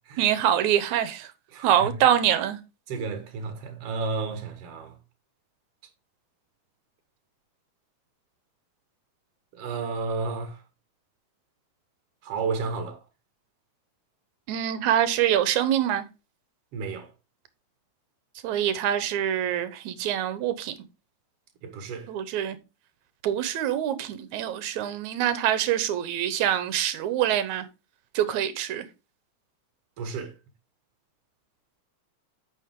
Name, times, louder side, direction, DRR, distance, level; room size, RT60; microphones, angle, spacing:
voice 1, 0.2-1.3 1.6-2.6 14.5-16.0 18.4-20.7 22.1-22.6 23.2-27.7 28.1-28.9, right 10 dB, 75° right, 2.3 m, -25 dB
voice 2, 1.5-1.9 2.9-4.9 9.5-10.6 12.2-13.0 16.7-17.1 21.6-22.1 30.0-30.3, right 4 dB, 55° right, 2.5 m, -32 dB
9.0 x 6.6 x 3.7 m
omnidirectional pair, 3.4 m